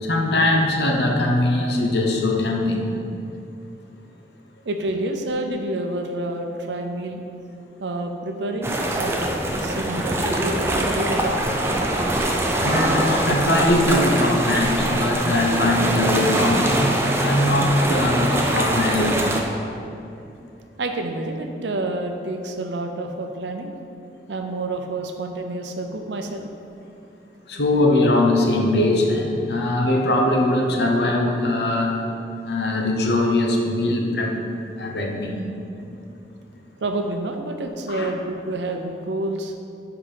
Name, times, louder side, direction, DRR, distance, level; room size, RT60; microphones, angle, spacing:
voice 1, 0.0-2.9 12.6-19.4 27.5-32.0 32.4-34.3 34.8-35.4 37.9-38.1, left 1 dB, 70° left, 1 dB, 0.8 m, -21 dB
voice 2, 4.6-7.2 7.8-11.5 20.8-23.7 24.3-26.5 36.8-39.5, right 2 dB, 80° right, 4 dB, 0.6 m, -28 dB
sound 1, 8.6-19.4, right 1 dB, 15° right, 0.5 m, -23 dB
5.6 x 4.7 x 5.1 m, 2.6 s
head